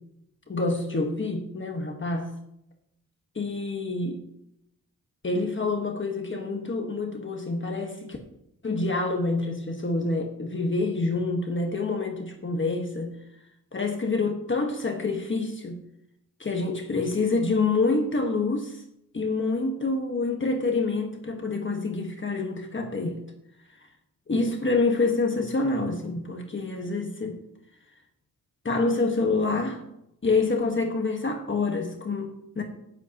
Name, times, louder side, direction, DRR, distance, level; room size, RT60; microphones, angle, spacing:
voice 1, 0.5-2.3 3.3-4.2 5.2-8.2 8.6-13.1 13.7-15.8 16.4-18.8 19.1-23.2 23.8-23.9 24.3-27.4 28.6-29.8 30.2-32.6, left 3 dB, 35° left, 2 dB, 1.4 m, -27 dB
17.5 x 7.8 x 2.9 m, 0.80 s
wide cardioid pair, 120°, 32 cm